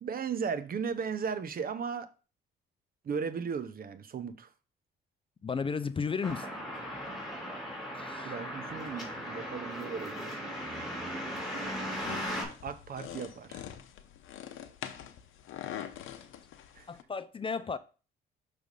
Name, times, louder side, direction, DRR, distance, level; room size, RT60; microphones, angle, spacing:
voice 1, 0.0-2.1 3.0-4.5 8.2-10.4 12.6-13.6 16.7-16.9, right 6 dB, 50° right, 0.7 m, -36 dB
voice 2, 5.4-6.5 7.9-8.3 16.9-17.8, left 5 dB, 25° left, 0.4 m, -34 dB
sound 1, 6.2-12.4, equal, ahead, 2.9 m, -37 dB
sound 2, 12.0-17.0, left 10 dB, 85° left, 0.7 m, -44 dB
6.2 x 3.4 x 5.2 m
cardioid pair, 90°, 20 cm